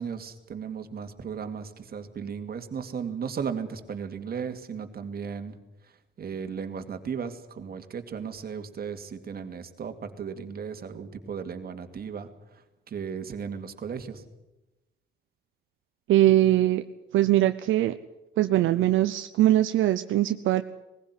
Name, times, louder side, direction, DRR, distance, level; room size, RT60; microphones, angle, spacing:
voice 1, 0.0-5.6 5.8-14.2, right 6 dB, 50° right, 7 dB, 2.4 m, -36 dB
voice 2, 16.1-16.8 17.1-17.9 18.4-20.6, right 14 dB, 80° right, 9 dB, 0.8 m, -21 dB
20.5 x 15.5 x 9.7 m, 0.98 s
cardioid pair, 90°, 20 cm